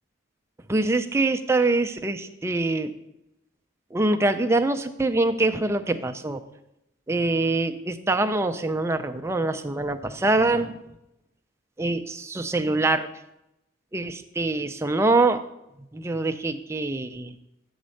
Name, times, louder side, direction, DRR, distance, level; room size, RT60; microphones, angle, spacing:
voice 1, 0.7-2.9 3.9-6.4 7.1-10.8 11.8-13.1 13.9-15.4 15.9-17.4, right 2 dB, 15° right, 7 dB, 0.4 m, -24 dB
8.0 x 4.2 x 6.4 m, 0.87 s
head